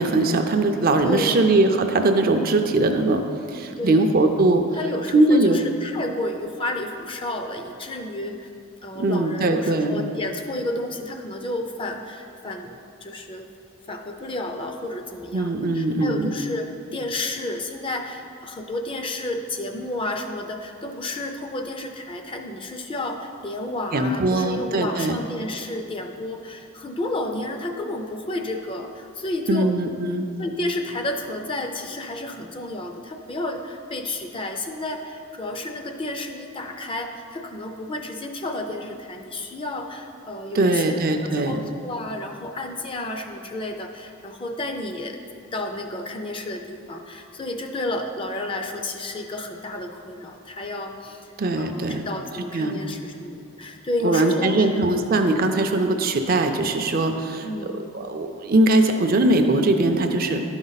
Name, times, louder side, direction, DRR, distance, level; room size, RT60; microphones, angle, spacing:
voice 1, 0.0-4.7 5.1-5.6 9.0-10.0 15.3-16.3 23.9-25.2 29.5-30.3 40.5-41.6 51.4-52.0 52.5-52.8 54.0-57.5 57.9-60.4, right 2 dB, 40° right, 6 dB, 0.5 m, -21 dB
voice 2, 1.0-1.4 3.8-4.0 4.7-8.5 8.8-13.5 13.9-29.7 30.4-45.2 45.5-51.3 51.6-54.7 57.4-57.8, left 1 dB, 25° left, 4 dB, 0.4 m, -31 dB
11.5 x 5.3 x 4.0 m, 2.6 s
head